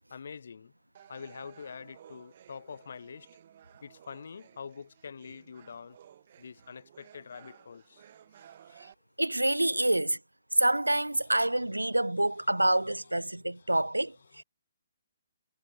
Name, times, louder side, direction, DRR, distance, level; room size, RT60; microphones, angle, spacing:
voice 1, 0.1-0.7 1.1-3.3 3.8-6.0 6.4-8.1 8.3-8.9 9.8-9.9 11.1-14.4, left 6 dB, 60° left, 0.9 m, -47 dB
sound 1, 0.9-8.9, right 10 dB, 45° right, 6.0 m, -56 dB
voice 2, 9.2-10.2 10.6-14.4, right 1 dB, 90° right, 0.5 m, -27 dB
figure-of-eight pair, 135°, 0 cm